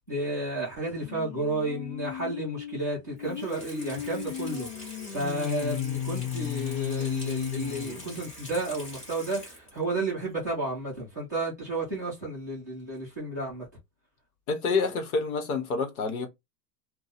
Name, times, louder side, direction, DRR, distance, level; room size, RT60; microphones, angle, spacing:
voice 1, 0.0-13.7, right 2 dB, 15° right, 0.3 m, -32 dB
sound 1, 1.0-8.6, left 10 dB, 85° left, 0.6 m, -35 dB
Water tap faucet / Sink (filling or washing), 3.2-9.9 10.3-10.4, equal, 15° left, 1.1 m, -45 dB
voice 2, 14.5-16.3, left 4 dB, 60° left, 1.1 m, -28 dB
2.7 x 2.2 x 4.0 m
supercardioid pair, 170°, 49 cm